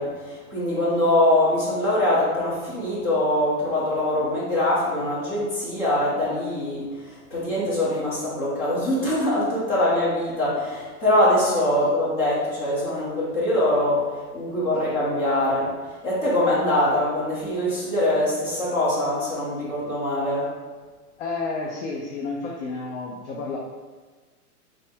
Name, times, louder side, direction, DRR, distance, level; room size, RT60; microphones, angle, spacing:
voice 1, 0.0-6.9 7.3-14.0 14.3-15.7 16.0-20.5, left 1 dB, 25° left, -8 dB, 1.2 m, -23 dB
voice 2, 21.2-23.6, left 3 dB, 50° left, -2 dB, 0.5 m, -31 dB
3.2 x 2.2 x 4.2 m, 1.4 s
supercardioid pair, 165°, 46 cm